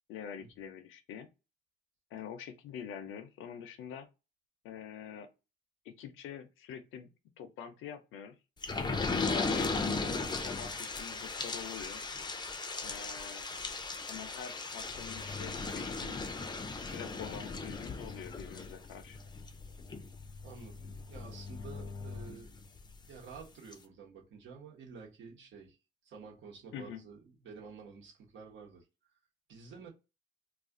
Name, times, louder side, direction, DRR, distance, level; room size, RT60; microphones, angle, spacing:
voice 1, 0.1-1.3 2.1-4.1 4.6-5.3 5.8-7.1 7.4-8.4 9.2-10.2 10.4-12.0 12.8-13.5 14.1-16.2 16.9-19.2 26.7-27.0, left 8 dB, 85° left, 0.6 m, -45 dB
sound 1, 8.6-22.9 23.4-23.5 23.7-23.8, left 3 dB, 20° left, 0.5 m, -37 dB
voice 2, 20.4-22.6 23.1-25.8 26.0-28.9 29.5-29.9, right 5 dB, 70° right, 1.1 m, -50 dB
2.4 x 2.3 x 3.6 m
cardioid pair, 90°, 20 cm